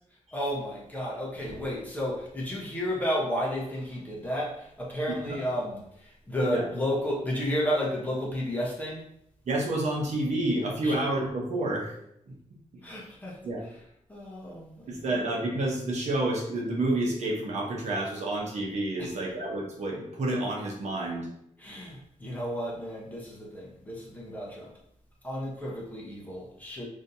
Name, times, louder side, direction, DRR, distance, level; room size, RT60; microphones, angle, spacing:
voice 1, 0.3-9.0 10.8-11.0 12.8-13.8 14.1-15.2 19.0-19.1 21.6-24.7 25.2-26.9, equal, 10° left, -5 dB, 0.9 m, -32 dB
voice 2, 9.5-11.9 12.3-12.4 13.4-13.6 14.9-21.3, right 1 dB, 60° right, -1 dB, 0.9 m, -29 dB
5.0 x 2.8 x 2.7 m, 0.74 s
wide cardioid pair, 165°, 13 cm